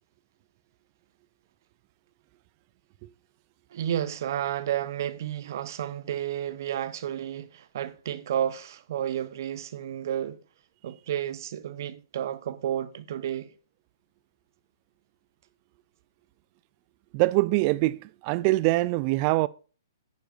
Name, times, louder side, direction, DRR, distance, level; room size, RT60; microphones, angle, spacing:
voice 1, 3.7-10.4 10.8-13.5, right 10 dB, 55° right, 0.8 m, -31 dB
voice 2, 17.1-19.5, right 20 dB, 35° right, 0.4 m, -23 dB
10.5 x 9.1 x 2.5 m
hypercardioid pair, 130°, 2 cm